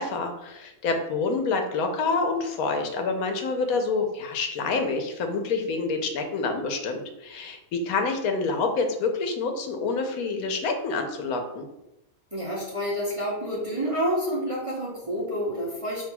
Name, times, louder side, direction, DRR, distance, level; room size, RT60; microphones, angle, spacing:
voice 1, 0.0-11.7, left 4 dB, 85° left, 5 dB, 1.1 m, -27 dB
voice 2, 12.3-16.1, equal, 35° right, -6 dB, 0.6 m, -28 dB
5.8 x 2.8 x 2.2 m, 0.89 s
omnidirectional pair, 1.5 m